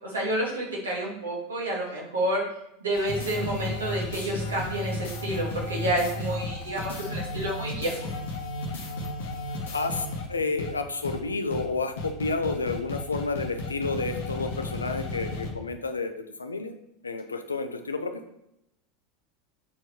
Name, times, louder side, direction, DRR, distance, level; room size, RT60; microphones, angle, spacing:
voice 1, 0.0-2.4 2.8-8.0, right 1 dB, 75° right, -3 dB, 2.3 m, -29 dB
sound 1, 2.9-10.3 10.6-10.7 11.0-11.2 11.5-11.6 12.0-15.5, left 2 dB, 60° left, 1.4 m, -34 dB
voice 2, 9.4-16.1 16.4-16.7 17.0-18.2, left 3 dB, 80° left, 8 dB, 0.7 m, -30 dB
7.1 x 4.6 x 4.6 m, 0.83 s
figure-of-eight pair, 80°, 0 cm